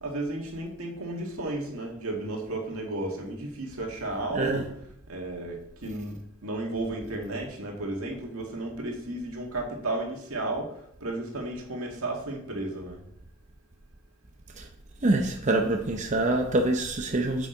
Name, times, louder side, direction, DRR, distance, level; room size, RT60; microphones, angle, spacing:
voice 1, 0.0-4.7 5.1-10.7 11.0-13.0, right 2 dB, 80° right, 2.0 m, -33 dB
voice 2, 4.3-4.7 14.6-14.7 15.0-17.5, right 2 dB, 35° right, 0.7 m, -25 dB
8.8 x 6.2 x 3.9 m
head